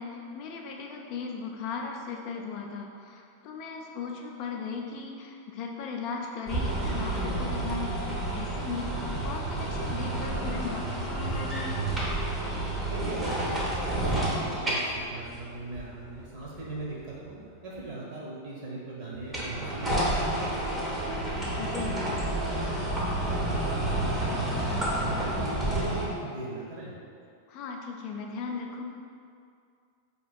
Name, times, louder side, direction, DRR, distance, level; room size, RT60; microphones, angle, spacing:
voice 1, 0.0-11.9 21.6-22.0 27.5-28.8, left 5 dB, 40° left, 1 dB, 0.3 m, -37 dB
sound 1, 6.5-16.8 19.2-26.1, right 1 dB, 10° right, 0.7 m, -30 dB
voice 2, 12.9-21.4 21.8-22.2 22.4-24.4 24.8-26.9, right 2 dB, 45° right, -4 dB, 0.9 m, -40 dB
4.0 x 2.8 x 2.3 m, 2.3 s
figure-of-eight pair, 90°, 0 cm